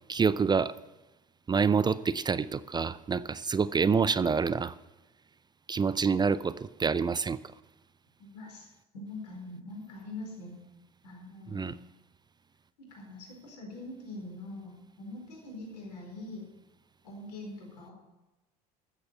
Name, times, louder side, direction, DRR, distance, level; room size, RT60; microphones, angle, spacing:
voice 1, 0.1-0.7 1.5-4.8 5.7-7.4 11.5-11.8, right 5 dB, 20° right, 17 dB, 0.5 m, -27 dB
voice 2, 8.2-8.7 8.9-10.5 11.0-11.7 12.9-16.5 17.0-17.9, left 2 dB, 85° left, 0 dB, 4.6 m, -43 dB
14.0 x 7.9 x 7.0 m, 1.1 s
hypercardioid pair, 75°, 20 cm